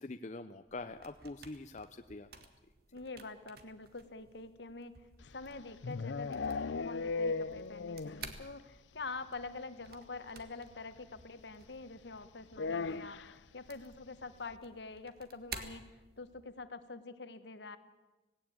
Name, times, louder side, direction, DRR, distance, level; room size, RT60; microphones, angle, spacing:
voice 1, 0.0-2.4, left 2 dB, 40° left, 8 dB, 0.6 m, -45 dB
sound 1, 0.6-16.6, right 5 dB, 55° right, 1.8 m, -54 dB
voice 2, 2.9-5.1 5.3-17.8, left 3 dB, 70° left, 11 dB, 1.4 m, -46 dB
sound 2, 5.3-8.3 8.6-8.7 9.0-9.1 9.4-9.5 10.7-10.8 12.5-13.4, left 4 dB, 85° left, 0.6 m, -37 dB
18.0 x 17.5 x 8.7 m, 1.1 s
head